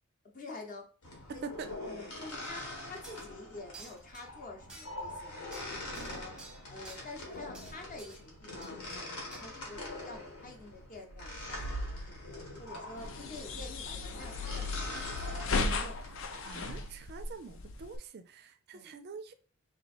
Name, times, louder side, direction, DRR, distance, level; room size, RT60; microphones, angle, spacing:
voice 1, 0.3-0.9 1.3-1.5 1.8-6.3 6.7-15.2 15.6-16.0 18.7-18.9, left 2 dB, 40° left, 3 dB, 0.8 m, -48 dB
sound 1, 1.0-16.9, left 1 dB, 85° left, 1.5 m, -43 dB
sound 2, 2.4-2.5 3.0-3.3 3.7-4.3 4.7-5.1 5.5-7.0 7.5-8.3 8.6-9.0 9.3-9.4, right 3 dB, 5° right, 0.8 m, -52 dB
sound 3, 13.0-18.0, left 3 dB, 60° left, 0.5 m, -36 dB
voice 2, 16.4-19.3, right 5 dB, 45° right, 9 dB, 0.4 m, -45 dB
3.3 x 3.0 x 4.2 m, 0.39 s
head